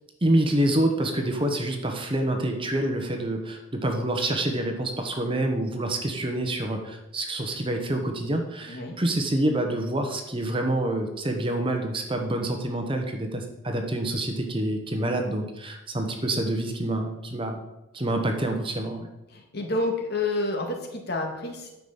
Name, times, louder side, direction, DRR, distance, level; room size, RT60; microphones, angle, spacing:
voice 1, 0.2-17.6 17.9-19.1, right 1 dB, 25° right, 4 dB, 1.1 m, -27 dB
voice 2, 8.7-9.0 19.3-21.7, left 2 dB, 50° left, 2 dB, 2.1 m, -29 dB
10.0 x 5.9 x 7.2 m, 0.93 s
head